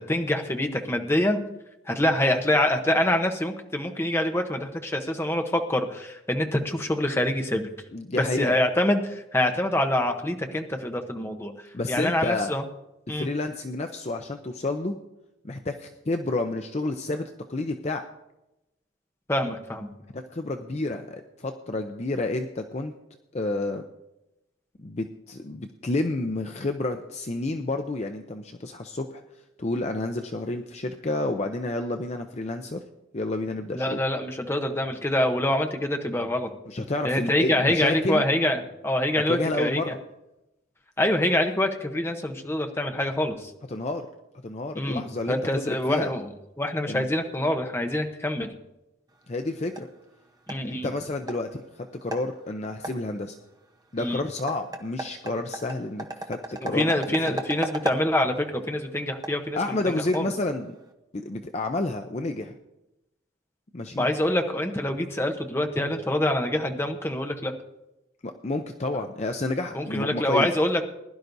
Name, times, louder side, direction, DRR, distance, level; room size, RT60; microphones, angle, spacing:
voice 1, 0.0-1.4 1.9-7.7 8.2-11.5 11.9-12.6 13.1-13.3 19.3-19.9 33.7-36.5 37.0-39.9 41.0-43.5 44.8-46.3 46.6-48.5 50.5-50.9 54.0-54.2 56.7-60.3 64.0-67.5 69.7-70.8, left 1 dB, 15° left, 5 dB, 0.9 m, -25 dB
voice 2, 7.9-8.6 11.7-12.6 13.1-15.0 15.4-18.0 20.1-22.9 23.3-23.8 24.8-29.2 29.6-32.8 33.1-34.0 36.7-38.2 39.3-40.0 43.7-44.1 44.4-46.1 46.8-47.1 49.3-49.9 50.6-53.4 53.9-57.0 57.3-57.4 59.5-60.7 61.1-62.5 63.7-64.0 68.2-70.5, left 2 dB, 35° left, 5 dB, 0.5 m, -30 dB
sound 1, 49.1-60.9, right 2 dB, 20° right, 0.8 m, -39 dB
20.5 x 11.0 x 2.7 m, 0.93 s
head